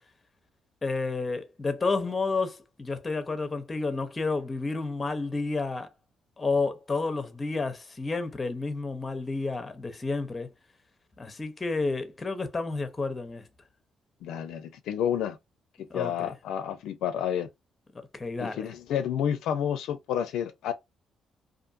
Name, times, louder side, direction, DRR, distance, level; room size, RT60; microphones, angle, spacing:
voice 1, 0.8-5.9 6.4-10.5 11.2-13.5 15.9-16.3 17.9-18.7, left 3 dB, 25° left, 0.6 m, -30 dB
voice 2, 14.2-15.4 15.8-17.5 18.4-20.7, left 9 dB, 85° left, 0.4 m, -30 dB
2.5 x 2.4 x 2.5 m
cardioid pair, 90°, 0 cm